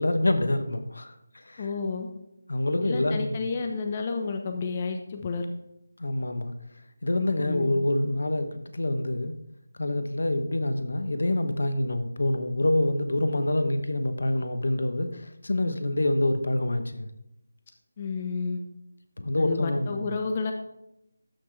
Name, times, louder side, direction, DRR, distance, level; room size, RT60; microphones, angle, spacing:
voice 1, 0.0-1.7 2.5-3.5 6.0-6.5 7.0-9.3 9.8-17.1 19.2-20.1, left 1 dB, 75° left, 9 dB, 1.1 m, -26 dB
voice 2, 1.6-2.1 2.8-5.5 7.4-7.7 18.0-18.6 19.4-20.5, left 4 dB, 30° left, 4 dB, 0.8 m, -30 dB
13.0 x 6.1 x 3.3 m, 0.85 s
figure-of-eight pair, 165°, 0 cm